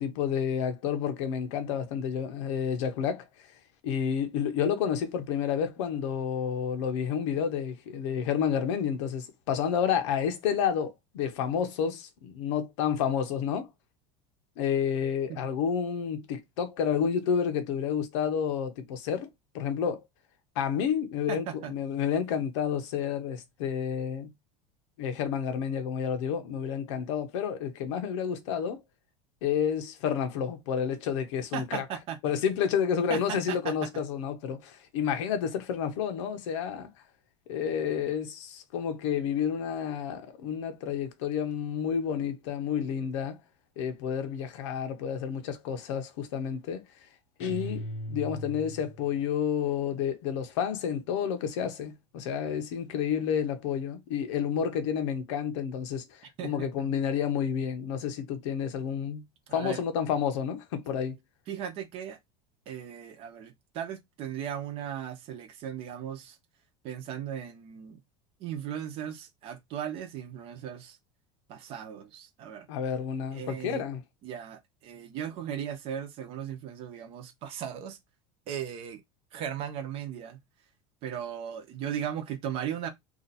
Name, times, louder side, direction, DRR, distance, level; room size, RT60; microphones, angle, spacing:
voice 1, 0.0-3.2 3.8-13.7 14.6-19.3 19.5-20.0 20.6-24.3 25.0-28.8 29.4-31.8 32.2-36.9 37.5-43.4 43.8-46.8 47.4-56.0 56.4-59.2 59.5-61.2 72.7-74.0, left 8 dB, 90° left, 0.9 m, -30 dB
voice 2, 21.3-21.7 31.5-32.3 33.1-33.7 56.4-56.9 59.5-59.8 61.5-62.2 62.7-66.4 66.8-68.0 68.4-71.0 71.5-72.7 73.3-73.8 74.2-78.0 78.5-79.0 79.3-80.4 81.0-82.9, right 9 dB, 40° right, 0.8 m, -37 dB
sound 1, 47.4-49.1, left 1 dB, 45° left, 0.7 m, -38 dB
2.8 x 2.5 x 4.0 m
cardioid pair, 170°, 15 cm